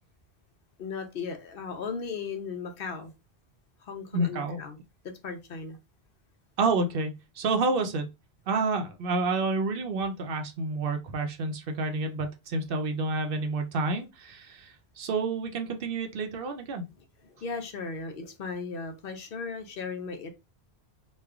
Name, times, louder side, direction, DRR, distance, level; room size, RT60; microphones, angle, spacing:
voice 1, 0.8-3.2 3.8-4.8 5.2-5.8 17.2-20.3, left 5 dB, 60° left, 0.8 m, -36 dB
voice 2, 4.1-4.6 6.6-8.1 8.5-16.8, right 3 dB, 65° right, 0.7 m, -29 dB
3.1 x 2.2 x 3.4 m
omnidirectional pair, 1.1 m